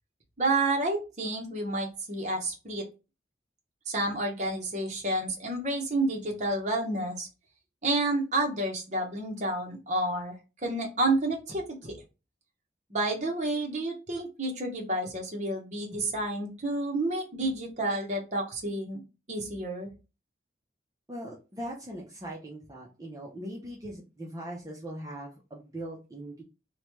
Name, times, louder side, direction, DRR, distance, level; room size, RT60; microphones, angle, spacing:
voice 1, 0.4-2.8 3.9-7.3 7.8-10.4 10.6-12.0 12.9-19.0 19.3-19.9, right 2 dB, 40° right, 1 dB, 0.8 m, -30 dB
voice 2, 21.1-26.4, right 1 dB, 20° right, -4 dB, 0.5 m, -40 dB
3.0 x 2.2 x 3.0 m, 0.30 s
head